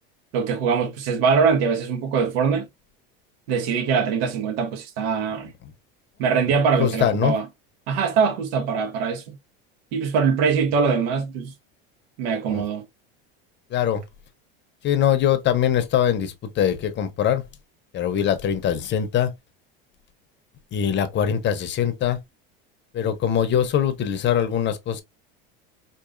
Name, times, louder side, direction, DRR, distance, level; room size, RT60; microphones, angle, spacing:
voice 1, 0.3-2.7 3.5-5.5 6.2-7.4 7.9-9.3 9.9-11.5 12.2-12.8, right 6 dB, 75° right, 1.1 m, -22 dB
voice 2, 6.8-7.4 12.5-12.6 13.7-14.0 14.8-17.4 17.9-19.3 20.7-22.2 22.9-25.0, left 9 dB, 40° left, 0.7 m, -22 dB
4.7 x 2.6 x 2.5 m
supercardioid pair, 110°, 30 cm